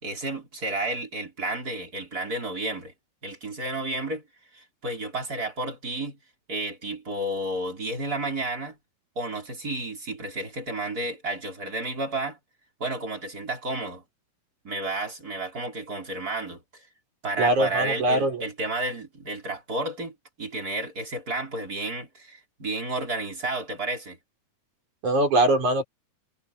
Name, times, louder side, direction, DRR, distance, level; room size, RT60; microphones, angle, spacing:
voice 1, 0.0-2.9 3.2-4.2 4.5-6.2 6.5-8.8 9.2-12.4 12.8-14.0 14.6-16.9 17.2-24.2, right 2 dB, 30° right, 5.7 m, -31 dB
voice 2, 17.4-18.4 25.0-25.8, right 1 dB, 70° right, 7.2 m, -22 dB
omnidirectional pair, 3.5 m